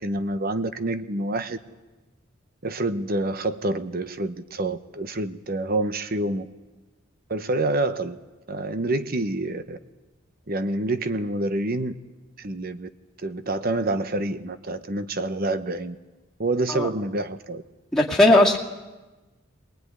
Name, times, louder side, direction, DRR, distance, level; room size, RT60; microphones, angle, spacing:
voice 1, 0.0-1.6 2.6-6.5 7.3-8.2 8.5-9.8 10.5-12.0 12.4-12.9 13.2-16.0 16.4-17.6, right 2 dB, 50° right, 11 dB, 1.0 m, -27 dB
voice 2, 17.9-18.6, left 1 dB, 5° left, -4 dB, 2.2 m, -17 dB
22.0 x 20.5 x 9.7 m, 1.1 s
head